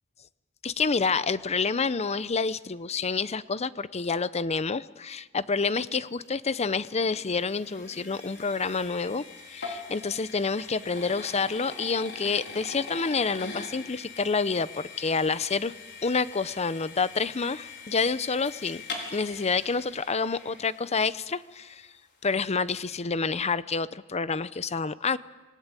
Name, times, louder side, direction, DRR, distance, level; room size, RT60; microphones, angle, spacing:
voice 1, 0.6-15.7 16.0-18.8 19.1-21.9 22.2-25.2, left 4 dB, 30° left, 16 dB, 0.7 m, -28 dB
sound 1, 6.1-21.3, left 4 dB, 55° left, 4.6 m, -43 dB
26.5 x 19.0 x 9.1 m, 1.3 s
head